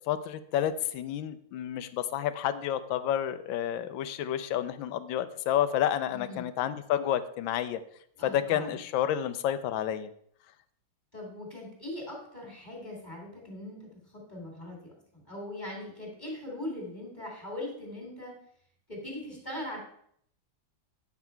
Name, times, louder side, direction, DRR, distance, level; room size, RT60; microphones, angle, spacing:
voice 1, 0.1-7.8 8.2-10.1, left 10 dB, 75° left, 13 dB, 1.3 m, -30 dB
voice 2, 6.1-6.5 8.2-8.8 11.1-13.9 14.3-18.3 18.9-19.8, left 1 dB, 20° left, -1 dB, 2.4 m, -40 dB
9.1 x 6.0 x 4.5 m, 0.67 s
omnidirectional pair, 2.2 m